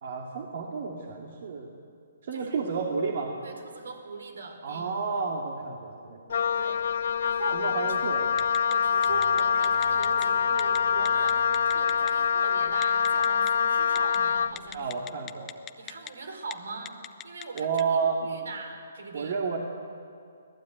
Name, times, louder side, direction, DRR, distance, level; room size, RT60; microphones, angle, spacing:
voice 1, 0.0-1.7 2.2-3.4 4.6-6.2 7.5-8.5 14.7-15.5 17.5-18.3 19.1-19.6, right 5 dB, 55° right, 1 dB, 2.4 m, -31 dB
voice 2, 3.4-4.9 6.6-6.8 7.2-7.9 8.7-14.9 15.8-17.0 17.2-19.4, right 3 dB, 80° right, 6 dB, 4.6 m, -41 dB
Wind instrument woodwind instrument, 6.3-14.6, left 7 dB, 60° left, 0.6 m, -25 dB
Telephone, 8.4-8.7 9.0-10.2 10.6-10.8 11.0-12.1 12.8-13.5 14.0-14.2 14.6-16.1 16.4-16.5 16.9-17.8, left 12 dB, 15° left, 0.7 m, -39 dB
sound 1, 9.1-13.1, right 5 dB, 30° right, 2.8 m, -50 dB
24.5 x 17.5 x 9.2 m, 2.4 s
hypercardioid pair, 155°, 0 cm